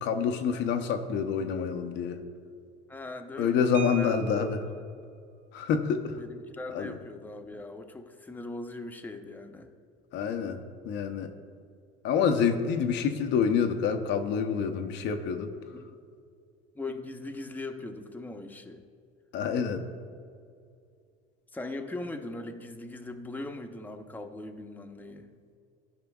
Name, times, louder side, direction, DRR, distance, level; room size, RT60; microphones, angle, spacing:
voice 1, 0.0-2.2 3.4-4.6 5.5-6.1 6.7-6.9 10.1-10.6 10.8-11.3 12.0-15.5 19.3-19.8, left 6 dB, 60° left, 6 dB, 0.7 m, -27 dB
voice 2, 2.9-4.1 4.6-4.8 6.2-9.7 15.7-16.0 16.7-18.8 21.5-25.3, left 2 dB, 10° left, 4 dB, 0.7 m, -40 dB
sound 1, 3.7-4.8 6.3-6.4 6.7-6.9 7.3-7.6, right 11 dB, 35° right, 0.9 m, -43 dB
14.0 x 5.0 x 2.3 m, 2.3 s
supercardioid pair, 85°, 21 cm